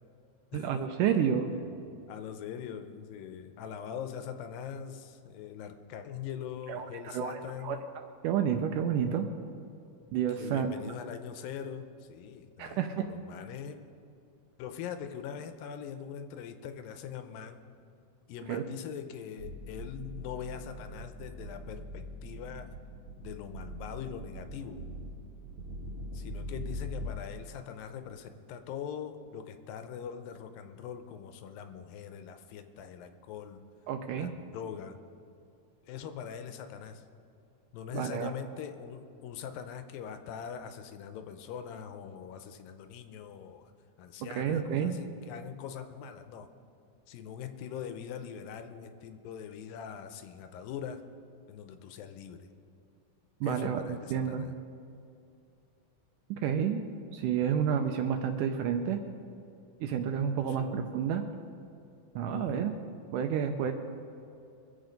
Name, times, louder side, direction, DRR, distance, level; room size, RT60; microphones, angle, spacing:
voice 1, 0.5-1.5 6.7-9.3 10.1-10.7 12.6-13.0 18.5-18.6 33.9-34.3 37.9-38.3 44.4-45.0 53.4-53.8 54.1-54.5 56.3-56.8 57.1-59.0 59.8-61.2 62.2-62.7 63.1-63.7, right 8 dB, 80° right, 6 dB, 2.0 m, -30 dB
voice 2, 2.1-7.9 10.4-13.8 14.6-17.6 18.3-22.7 23.2-24.8 26.1-33.6 34.1-35.0 35.9-37.0 37.7-43.7 44.0-46.5 47.1-51.0 51.5-52.5 53.4-54.5 60.4-60.8 62.3-62.7, left 8 dB, 80° left, 8 dB, 2.4 m, -42 dB
sound 1, 19.4-27.1, equal, 50° right, 1.8 m, -42 dB
23.0 x 7.9 x 5.2 m, 2.6 s
omnidirectional pair, 4.2 m